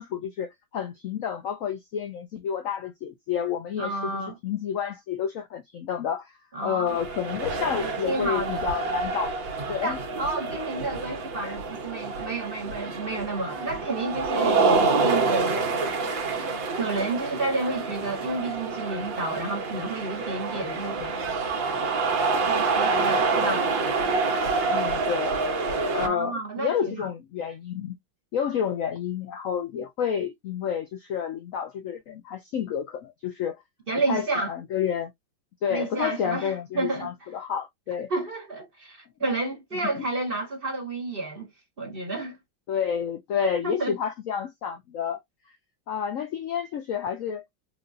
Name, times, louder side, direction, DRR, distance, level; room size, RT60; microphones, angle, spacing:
voice 1, 0.0-6.3 6.6-9.3 9.7-10.0 22.9-23.6 24.7-25.4 25.9-28.0 28.3-33.6 34.1-35.1 35.6-38.1 39.8-40.1 42.7-45.2 45.9-47.4, left 8 dB, 80° left, 0.7 m, -30 dB
voice 2, 3.8-4.4 6.5-7.0 8.0-8.6 9.8-15.8 16.8-21.2 22.5-23.6 26.0-27.1 33.9-34.5 35.7-37.1 38.1-41.5 41.8-42.4 43.6-44.0, right 2 dB, 35° right, 1.0 m, -30 dB
sound 1, 6.9-26.1, right 4 dB, 75° right, 1.8 m, -27 dB
4.7 x 2.5 x 2.5 m
omnidirectional pair, 2.1 m